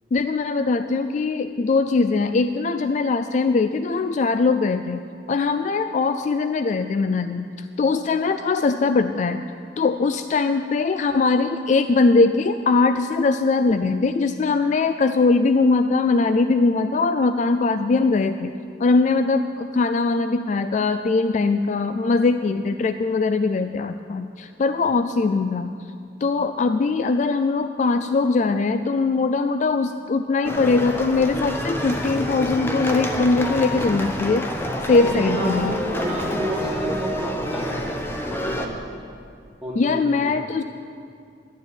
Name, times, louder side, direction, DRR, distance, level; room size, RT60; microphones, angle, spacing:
voice 1, 0.1-5.0 5.3-7.5 7.8-9.5 9.8-18.5 18.8-25.8 26.2-34.5 34.9-35.7 39.8-40.6, left 3 dB, 45° left, 9 dB, 0.3 m, -21 dB
sound 1, 30.4-38.7, equal, 15° left, 0.9 m, -28 dB
voice 2, 34.9-38.7 39.6-40.4, equal, 5° right, -7 dB, 3.1 m, -30 dB
11.5 x 7.0 x 9.1 m, 2.3 s
head